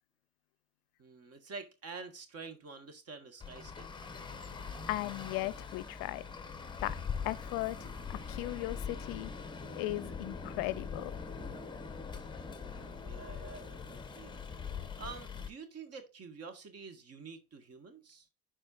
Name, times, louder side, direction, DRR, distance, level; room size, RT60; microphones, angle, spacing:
voice 1, 1.0-4.1 12.5-14.4 15.0-18.3, right 4 dB, 40° right, 1.6 m, -48 dB
Traffic noise roadway noise, 3.4-15.5, left 5 dB, 10° left, 1.1 m, -42 dB
voice 2, 4.9-6.2 6.8-7.0 7.2-9.3 9.8-11.1, left 19 dB, 65° left, 0.5 m, -37 dB
11.0 x 4.4 x 2.5 m
supercardioid pair, 105°, 38 cm